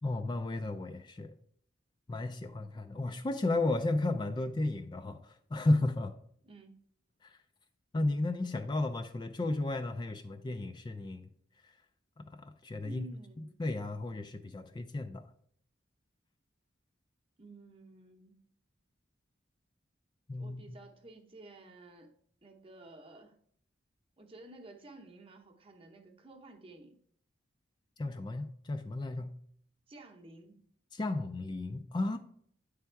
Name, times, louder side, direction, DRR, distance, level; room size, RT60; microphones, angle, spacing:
voice 1, 0.0-1.3 2.1-6.1 7.2-7.4 7.9-11.3 11.6-11.7 12.2-13.1 13.4-15.2 20.3-20.8 28.0-29.3 30.9-32.2, left 2 dB, 25° left, 0.3 m, -34 dB
voice 2, 6.4-6.8 12.8-13.6 17.4-18.4 20.3-22.1 22.4-23.4 24.2-27.0 29.9-30.6, right 2 dB, 30° right, 0.8 m, -53 dB
9.3 x 3.4 x 4.5 m
head